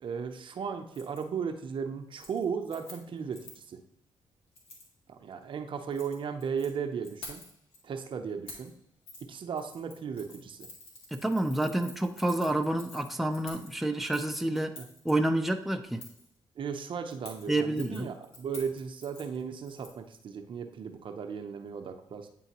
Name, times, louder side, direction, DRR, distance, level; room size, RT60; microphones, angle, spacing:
voice 1, 0.0-3.8 5.1-7.4 7.8-8.7 9.3-10.7 14.8-14.9 16.6-22.3, right 6 dB, 60° right, 0.7 m, -36 dB
Keys jangling, 0.9-1.2 1.6-1.9 2.1-3.7 4.5-4.9 5.7-6.7 7.0-7.8 8.5-8.7 9.1-9.2 9.5-15.1 16.0-16.3 17.1-20.1 20.4-20.5, left 2 dB, 80° left, 1.7 m, -49 dB
voice 2, 11.1-14.8 15.0-16.1 17.5-18.1, right 1 dB, ahead, 0.6 m, -29 dB
9.1 x 3.8 x 2.9 m
supercardioid pair, 55°, 10 cm